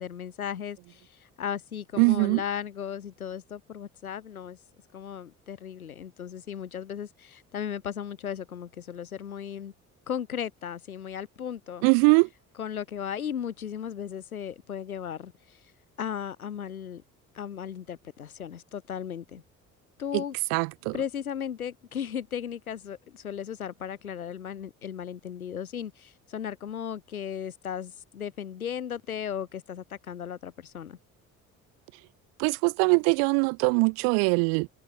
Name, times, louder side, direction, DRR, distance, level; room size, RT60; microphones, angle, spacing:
voice 1, 0.0-4.6 4.9-9.7 10.1-11.8 12.6-15.6 16.0-17.0 17.3-19.4 20.0-20.4 20.9-31.0, left 8 dB, 80° left, 4.9 m, -36 dB
voice 2, 2.0-2.4 11.8-12.3 20.1-20.2 20.5-21.0 32.4-34.7, right 40 dB or more, 60° right, 1.3 m, -22 dB
figure-of-eight pair, 50°, 43 cm